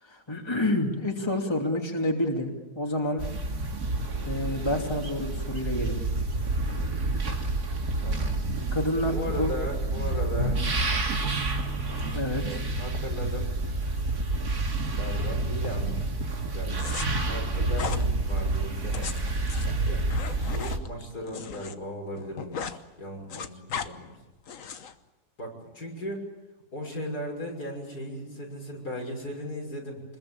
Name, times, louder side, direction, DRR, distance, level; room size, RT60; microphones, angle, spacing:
voice 1, 0.0-3.3 4.3-6.0 8.7-9.5 12.1-12.6, left 1 dB, 15° left, 1 dB, 2.9 m, -28 dB
sound 1, 3.2-20.8, right 2 dB, 80° right, 3.1 m, -29 dB
voice 2, 8.0-8.4 9.1-10.6 12.8-13.5 15.0-16.0 16.5-17.0 17.3-19.2 19.8-20.1 20.5-24.1 25.4-26.3 26.7-30.0, equal, 85° left, 0 dB, 6.7 m, -36 dB
sound 2, 11.2-14.9, right 9 dB, 60° right, 1.9 m, -43 dB
sound 3, 16.8-17.1 17.7-18.0 18.8-21.7 22.0-22.8 23.1-23.9 24.5-24.9, left 7 dB, 60° left, 1.4 m, -36 dB
26.0 x 21.0 x 8.8 m, 1.1 s
omnidirectional pair, 1.6 m